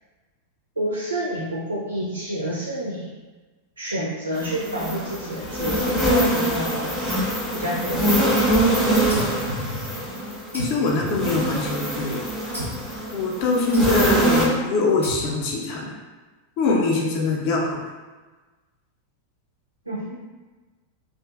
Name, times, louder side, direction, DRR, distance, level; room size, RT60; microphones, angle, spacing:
voice 1, 0.8-3.2 3.8-6.9 7.5-8.3 19.9-20.2, right 1 dB, 85° right, -4 dB, 0.4 m, -28 dB
sound 1, 4.3-14.5, right 1 dB, 5° left, 0.7 m, -24 dB
sound 2, 9.1-10.1 10.5-11.8 12.5-13.0 13.7-14.3 15.0-15.7, equal, 80° left, 0.7 m, -33 dB
voice 2, 10.5-12.2 13.1-15.9 16.6-17.8, left 3 dB, 45° left, -1 dB, 0.4 m, -23 dB
2.5 x 2.4 x 2.3 m, 1.3 s
figure-of-eight pair, 90°, 0 cm